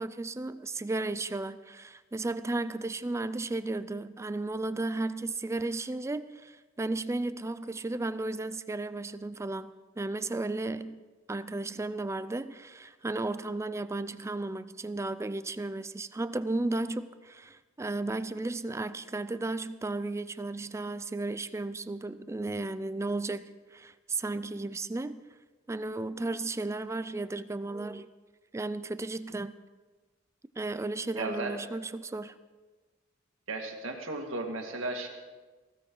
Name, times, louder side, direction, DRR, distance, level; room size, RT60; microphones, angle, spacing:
voice 1, 0.0-11.0 11.3-25.2 25.7-28.1 28.5-29.5 30.6-32.3, right 2 dB, 15° right, 14 dB, 0.4 m, -34 dB
voice 2, 31.2-31.5 33.5-35.1, right 2 dB, 80° right, 2 dB, 2.1 m, -35 dB
19.5 x 16.0 x 3.9 m, 1.3 s
head